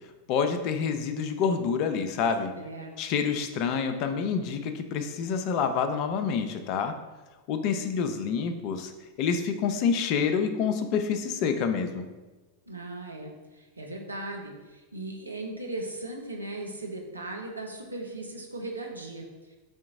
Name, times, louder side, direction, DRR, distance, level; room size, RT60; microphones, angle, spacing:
voice 1, 0.3-2.5 3.0-6.9 7.5-8.9 9.2-12.1, left 6 dB, 40° left, 7 dB, 0.4 m, -27 dB
voice 2, 2.5-3.2 12.7-19.5, right 2 dB, 80° right, 1 dB, 0.6 m, -38 dB
4.4 x 2.9 x 3.5 m, 1.2 s
figure-of-eight pair, 90°, 0 cm